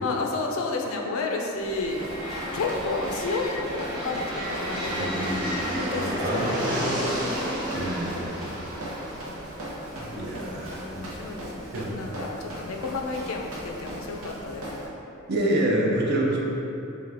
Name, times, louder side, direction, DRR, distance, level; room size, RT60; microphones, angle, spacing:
voice 1, 0.0-2.0 2.5-5.5 5.8-7.1 8.4-9.4 10.1-14.9, left 3 dB, 75° left, 1 dB, 0.5 m, -32 dB
sound 1, 1.6-11.4, equal, 20° right, 0.8 m, -32 dB
Run, 1.6-14.8, right 1 dB, 90° right, 0.8 m, -39 dB
voice 2, 4.8-7.1 7.7-8.6 10.0-11.1 11.7-12.1 15.3-16.4, right 1 dB, 50° right, -3 dB, 0.6 m, -28 dB
3.8 x 3.2 x 3.4 m, 2.8 s
head